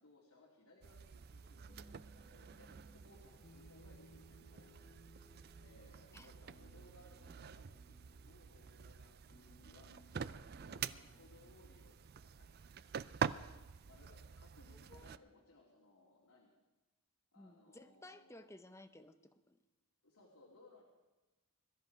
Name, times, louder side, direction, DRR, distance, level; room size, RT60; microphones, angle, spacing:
voice 1, 0.0-4.9 5.6-8.0 8.2-12.5 13.8-16.5 17.3-18.5 20.0-20.8, left 2 dB, 85° left, -4 dB, 2.8 m, -64 dB
sound 1, 0.8-15.2, right 7 dB, 45° right, 0.4 m, -47 dB
sound 2, 1.7-11.6, equal, 30° left, 1.4 m, -65 dB
voice 2, 17.4-19.6, left 1 dB, 10° left, 10 dB, 0.7 m, -57 dB
22.0 x 13.0 x 4.7 m, 1.1 s
head